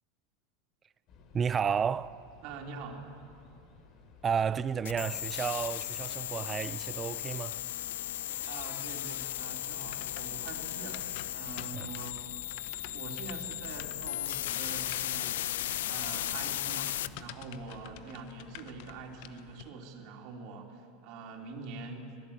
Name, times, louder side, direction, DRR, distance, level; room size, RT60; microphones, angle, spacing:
sound 1, 1.1-18.0, left 4 dB, 45° left, 3.5 m, -57 dB
voice 1, 1.3-2.2 4.2-7.6 11.7-11.9, right 7 dB, 25° right, 0.6 m, -32 dB
voice 2, 2.4-3.1 8.5-12.2 12.9-15.6 15.9-22.1, right 4 dB, 55° right, 3.6 m, -44 dB
sound 2, 4.9-17.1, left 13 dB, 85° left, 0.6 m, -36 dB
sound 3, 9.8-19.7, left 12 dB, 65° left, 1.1 m, -49 dB
24.5 x 17.0 x 8.7 m
supercardioid pair, 135°, 0 cm